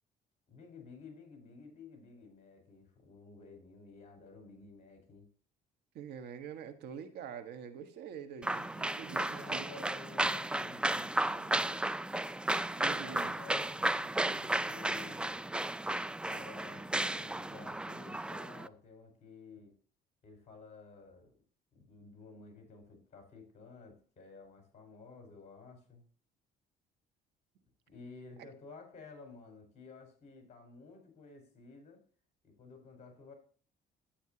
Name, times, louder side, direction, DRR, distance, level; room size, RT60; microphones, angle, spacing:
voice 1, 0.5-5.3 9.1-11.9 12.5-15.4 16.3-19.7 20.2-21.4 21.7-26.0 27.9-32.0 32.4-33.3, left 4 dB, 40° left, 4.8 m, -53 dB
voice 2, 5.9-9.2 9.5-9.6 12.8-13.3 28.4-28.5, right 8 dB, 75° right, 1.5 m, -45 dB
sound 1, 8.4-18.7, right 1 dB, 5° right, 0.3 m, -34 dB
11.5 x 9.0 x 2.9 m
cardioid pair, 110°, 17 cm